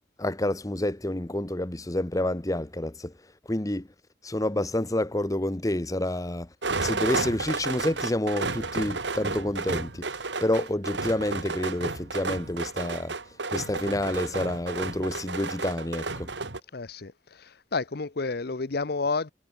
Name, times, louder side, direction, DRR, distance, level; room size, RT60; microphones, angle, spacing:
voice 1, 0.2-3.1 3.5-3.9 4.2-6.5 6.8-10.1 10.4-13.1 13.5-16.3, left 1 dB, 20° left, 1.0 m, -28 dB
sound 1, 6.6-16.6, right 3 dB, 80° right, 2.8 m, -32 dB
voice 2, 16.7-19.3, left 4 dB, 60° left, 0.8 m, -30 dB
head